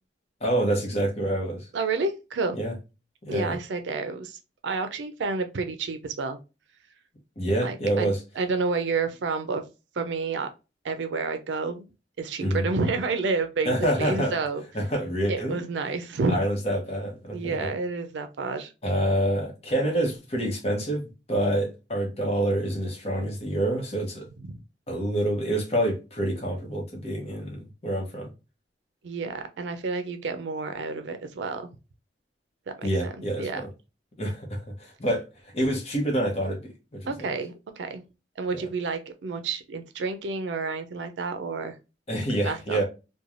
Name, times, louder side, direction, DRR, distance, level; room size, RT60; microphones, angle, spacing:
voice 1, 0.4-1.7 2.5-2.7 3.2-3.6 7.4-8.2 12.4-12.7 13.6-14.4 14.7-15.6 16.3-17.7 18.8-24.3 24.9-28.3 32.8-33.7 34.2-35.2 35.5-37.1 42.1-42.8, right 1 dB, 35° left, 0.9 m, -27 dB
voice 2, 1.7-2.6 3.3-6.4 7.6-8.1 8.4-9.6 10.0-10.5 10.8-11.9 12.2-14.6 15.3-16.4 17.3-18.7 29.0-31.7 32.8-32.9 33.4-33.6 37.1-38.0 38.4-41.7 42.4-42.8, right 4 dB, 80° right, 0.4 m, -30 dB
3.1 x 2.2 x 2.4 m
head